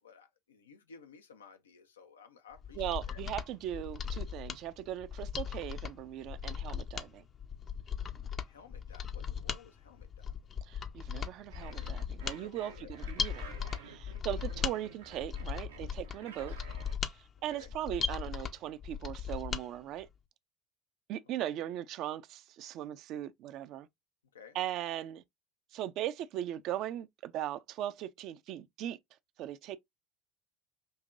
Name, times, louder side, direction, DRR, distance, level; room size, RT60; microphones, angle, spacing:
voice 1, 0.0-3.2 8.5-10.3 12.3-12.9 17.4-17.7 21.4-21.5 24.3-24.6, left 5 dB, 75° left, 0.6 m, -55 dB
Mechanisms, 2.6-19.7 20.0-20.1, left 7 dB, 35° left, 0.6 m, -38 dB
voice 2, 2.8-7.2 10.7-13.4 13.8-16.5 17.1-17.2 17.4-20.1 21.1-23.9 24.5-25.2 25.7-29.0 29.4-29.8, right 12 dB, 50° right, 0.5 m, -39 dB
sound 1, 11.5-17.0, right 4 dB, 75° right, 0.9 m, -51 dB
5.4 x 2.9 x 2.5 m
figure-of-eight pair, 70°, 0 cm